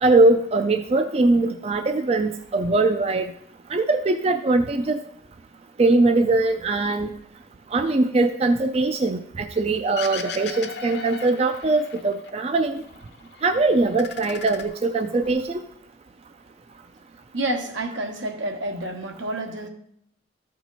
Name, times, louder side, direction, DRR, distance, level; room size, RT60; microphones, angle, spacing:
voice 1, 0.0-3.3 3.7-5.0 5.8-7.1 7.7-12.8 13.4-15.6, right 2 dB, 30° right, 7 dB, 0.4 m, -21 dB
sound 1, 10.0-12.3 12.6-13.5 13.8-15.3, left 6 dB, 60° left, 0.7 m, -37 dB
voice 2, 17.3-19.7, right 1 dB, 85° right, 3 dB, 1.3 m, -29 dB
13.5 x 4.5 x 4.1 m, 0.70 s
head